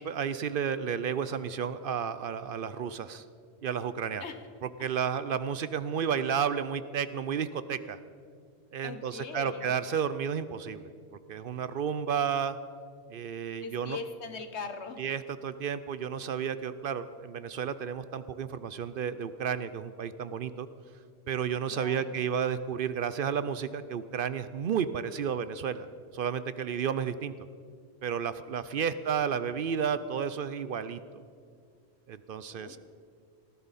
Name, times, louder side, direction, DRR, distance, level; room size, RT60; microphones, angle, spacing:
voice 1, 0.0-3.2 3.6-4.2 4.8-8.0 8.7-10.9 11.3-12.6 13.1-14.0 15.0-20.7 21.3-25.9 26.1-27.3 28.0-31.2 32.1-32.8, right 7 dB, 60° right, 13 dB, 0.7 m, -32 dB
voice 2, 8.8-9.7 13.6-15.0 21.7-22.2 32.5-32.8, left 5 dB, 80° left, 8 dB, 1.4 m, -40 dB
19.0 x 14.5 x 4.1 m, 2.2 s
omnidirectional pair, 1.1 m